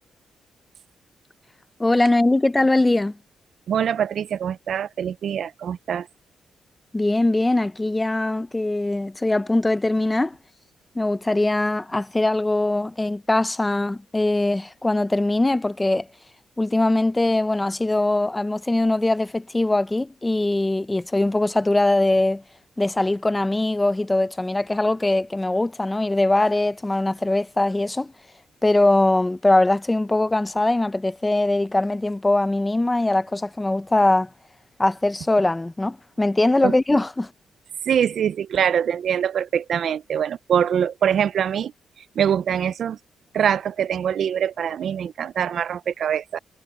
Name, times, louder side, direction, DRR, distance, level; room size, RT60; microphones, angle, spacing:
voice 1, 1.8-3.2 6.9-10.4 10.9-16.1 16.6-22.4 22.8-28.1 28.6-34.3 34.8-37.3, left 2 dB, 10° left, 0.6 m, -21 dB
voice 2, 3.7-6.1 36.6-36.7 37.9-41.7 42.0-43.0 43.3-46.4, right 8 dB, 60° right, 0.3 m, -23 dB
cardioid pair, 145°, 0 cm